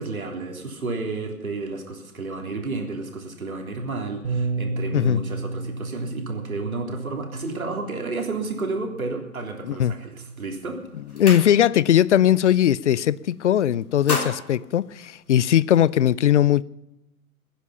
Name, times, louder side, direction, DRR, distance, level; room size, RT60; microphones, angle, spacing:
voice 1, 0.0-10.8 11.1-11.2, right 3 dB, 75° right, 3.6 m, -31 dB
Bass guitar, 4.2-10.5, right 3 dB, 55° right, 4.3 m, -33 dB
sound 1, 10.3-10.5 10.8-12.0 12.3-12.6 12.9-13.5 13.8-15.7, left 3 dB, 85° left, 3.6 m, -33 dB
voice 2, 11.2-16.6, left 11 dB, 55° left, 0.6 m, -19 dB
22.0 x 10.0 x 5.6 m
figure-of-eight pair, 125°, 43 cm